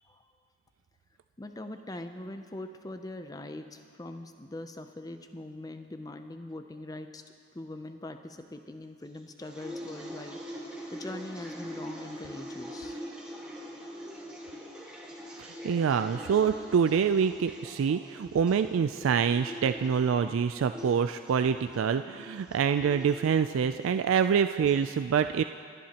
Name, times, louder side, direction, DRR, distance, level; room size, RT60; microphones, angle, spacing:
voice 1, 1.4-7.2 7.5-13.0, left 1 dB, 20° left, 7 dB, 0.5 m, -42 dB
sound 1, 9.1-24.8, equal, 5° right, 1.5 m, -44 dB
voice 2, 15.4-25.4, right 7 dB, 80° right, 9 dB, 0.3 m, -26 dB
28.0 x 10.5 x 2.9 m, 2.2 s
head